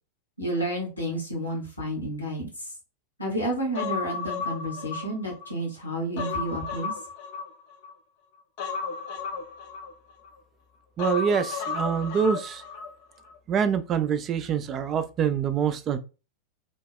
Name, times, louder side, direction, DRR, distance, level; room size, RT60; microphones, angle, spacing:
voice 1, 0.4-2.7 3.2-6.9, right 1 dB, 85° left, 1.1 m, -31 dB
Human voice, 3.7-5.5 5.9-7.9 8.6-10.3 11.0-12.9 13.2-13.3, left 5 dB, 50° left, 0.5 m, -33 dB
voice 2, 11.0-12.6 13.5-16.0, right 7 dB, 30° right, 0.3 m, -25 dB
2.8 x 2.1 x 3.4 m
figure-of-eight pair, 90°, 0 cm